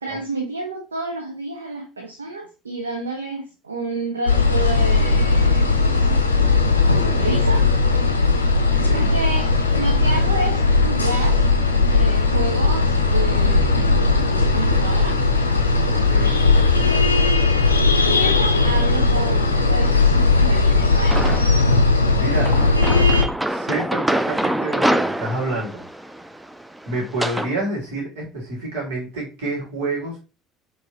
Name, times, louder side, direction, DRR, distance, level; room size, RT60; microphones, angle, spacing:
voice 1, 0.0-5.8 7.2-7.7 8.9-11.4 11.9-14.1 14.5-15.2 18.1-21.2, right 2 dB, 80° right, 2 dB, 0.7 m, -29 dB
sound 1, 4.3-23.2, left 3 dB, 85° left, 0.5 m, -17 dB
voice 2, 8.7-9.1 15.9-16.4 22.1-22.6 23.4-26.1 26.9-30.2, right 2 dB, 65° right, -2 dB, 2.1 m, -28 dB
sound 2, 21.1-21.7 22.4-27.5, right 1 dB, 5° right, 0.4 m, -25 dB
4.5 x 3.1 x 2.9 m, 0.30 s
figure-of-eight pair, 60°, 0 cm